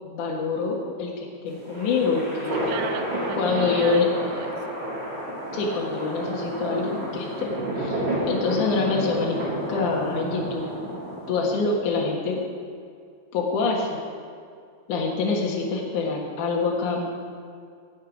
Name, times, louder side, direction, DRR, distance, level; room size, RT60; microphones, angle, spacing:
voice 1, 0.0-2.5 3.3-4.1 5.5-9.4 9.7-10.7 11.3-12.4 13.3-14.0 14.9-17.1, left 4 dB, 75° left, -2 dB, 1.8 m, -26 dB
sound 1, 1.5-11.9, equal, 35° right, 2.0 m, -30 dB
voice 2, 2.5-4.5, right 9 dB, 80° right, 9 dB, 3.1 m, -36 dB
19.0 x 8.7 x 5.1 m, 2.3 s
omnidirectional pair, 5.8 m